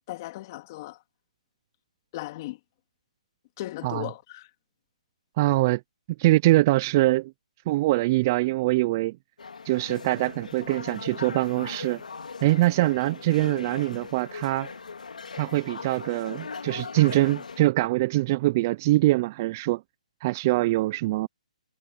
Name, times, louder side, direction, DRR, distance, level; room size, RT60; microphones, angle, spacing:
voice 1, 0.1-1.0 2.1-2.6 3.6-4.5, left 17 dB, 30° left, 2.7 m, -36 dB
voice 2, 5.4-5.8 6.2-7.3 7.7-9.2 9.7-12.0 12.4-14.7 15.4-19.8 20.2-21.3, right 18 dB, 25° right, 0.3 m, -23 dB
sound 1, 9.4-17.7, left 5 dB, 90° left, 3.0 m, -39 dB
hypercardioid pair, 165°, 4 cm